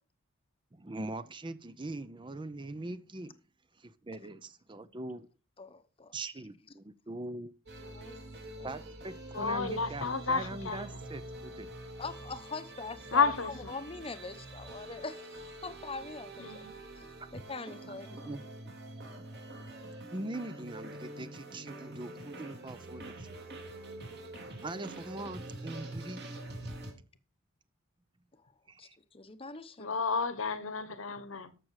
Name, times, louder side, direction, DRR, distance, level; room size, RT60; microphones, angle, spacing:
voice 1, 0.7-3.4 3.8-5.3 6.1-7.5 8.6-11.7 18.1-18.4 20.1-23.4 24.6-26.2 28.7-29.0, right 2 dB, 25° right, 0.6 m, -42 dB
voice 2, 5.6-6.1 7.8-8.8 12.0-13.2 13.7-16.6 17.0-17.1 17.3-18.2 28.4-28.5 28.8-30.0, left 4 dB, 25° left, 0.9 m, -43 dB
sound 1, 7.7-26.9, right 1 dB, 50° right, 3.1 m, -45 dB
voice 3, 9.3-11.0 13.1-13.8 16.4-16.8 29.8-31.5, left 5 dB, 70° left, 1.2 m, -31 dB
13.5 x 6.2 x 4.8 m
head